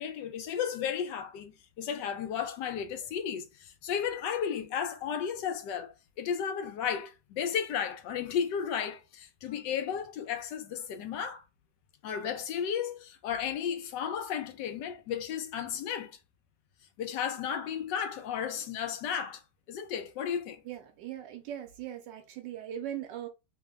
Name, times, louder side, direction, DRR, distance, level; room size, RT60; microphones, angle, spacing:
voice 1, 0.0-11.4 12.0-16.2 17.0-19.4 19.7-20.6, left 8 dB, 80° left, 1.3 m, -34 dB
voice 2, 20.6-23.3, right 10 dB, 80° right, 1.2 m, -40 dB
3.3 x 2.1 x 3.5 m
omnidirectional pair, 1.9 m